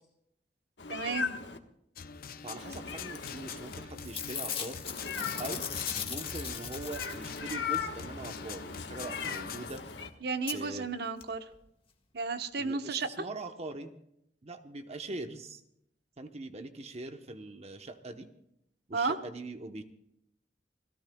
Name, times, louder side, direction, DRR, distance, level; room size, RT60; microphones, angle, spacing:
Meow, 0.8-1.6 2.6-3.9 4.8-5.9 6.8-10.1, left 6 dB, 75° left, 1.4 m, -38 dB
voice 1, 0.9-1.3 10.2-11.4 12.1-13.1 18.9-19.2, right 4 dB, 65° right, 8 dB, 1.1 m, -32 dB
sound 1, 2.0-9.7, left 6 dB, 55° left, 0.7 m, -44 dB
voice 2, 2.4-4.8 5.4-5.7 6.0-9.8 10.5-10.9 12.6-13.9 14.4-15.6 16.2-18.3 18.9-19.8, right 2 dB, 40° right, 6 dB, 1.0 m, -42 dB
Packing tape duct tape / Tearing, 3.5-3.7 4.0-7.6 9.5-9.6 9.8-9.9 10.5-10.6 11.2-11.3 11.5-11.6, left 7 dB, 35° left, 1.7 m, -38 dB
29.0 x 17.5 x 2.3 m, 0.76 s
head